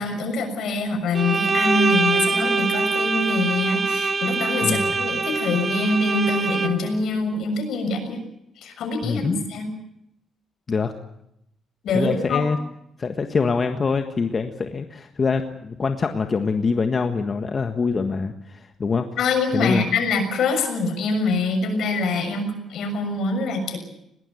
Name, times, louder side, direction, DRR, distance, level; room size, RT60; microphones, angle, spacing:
voice 1, 0.0-8.2 8.6-9.7 11.8-12.5 19.2-23.8, left 3 dB, 70° left, 6 dB, 6.7 m, -24 dB
Bowed string instrument, 1.1-7.0, right 4 dB, 35° right, 2.2 m, -24 dB
voice 2, 4.6-4.9 9.0-9.4 10.7-10.9 11.9-12.6 13.0-19.1 19.5-19.9, left 4 dB, 40° left, 6 dB, 1.5 m, -24 dB
21.5 x 19.0 x 9.4 m, 0.80 s
cardioid pair, 90°, 0 cm